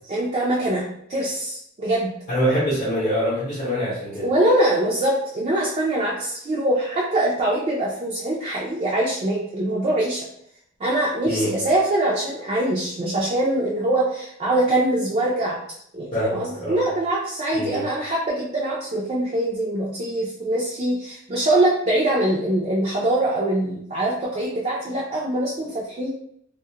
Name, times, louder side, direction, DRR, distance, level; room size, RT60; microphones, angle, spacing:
voice 1, 0.1-0.8 1.1-2.1 4.2-10.3 10.8-15.6 15.9-26.1, right 1 dB, 35° right, -4 dB, 0.4 m, -23 dB
voice 2, 2.3-4.3 11.3-11.5 16.1-16.8 17.5-17.8, equal, 40° left, -10 dB, 0.7 m, -24 dB
2.3 x 2.0 x 2.7 m, 0.70 s
head